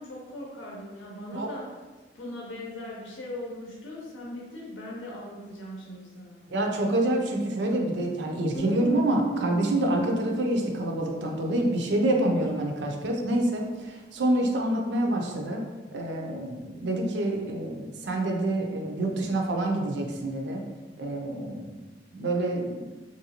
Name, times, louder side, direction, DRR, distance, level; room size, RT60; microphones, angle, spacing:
voice 1, 0.0-1.7 2.1-6.4, left 1 dB, 85° left, -4 dB, 0.7 m, -39 dB
voice 2, 6.5-15.6 15.9-20.6 21.0-21.7 22.1-22.9, right 1 dB, 70° right, 1 dB, 0.5 m, -27 dB
Guitar, 8.5-13.1, right 4 dB, 25° left, 0.7 m, -37 dB
3.1 x 2.6 x 2.8 m, 1.2 s
head